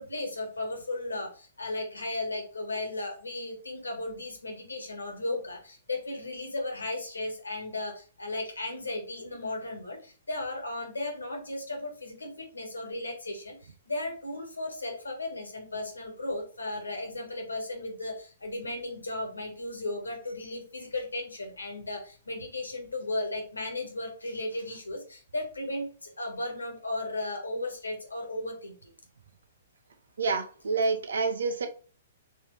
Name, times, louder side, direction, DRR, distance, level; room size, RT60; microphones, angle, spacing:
voice 1, 0.0-28.9, left 2 dB, 85° left, 2 dB, 1.7 m, -35 dB
voice 2, 30.2-31.7, right 4 dB, 70° right, 7 dB, 0.9 m, -28 dB
4.3 x 3.4 x 3.4 m, 0.39 s
figure-of-eight pair, 120°, 0 cm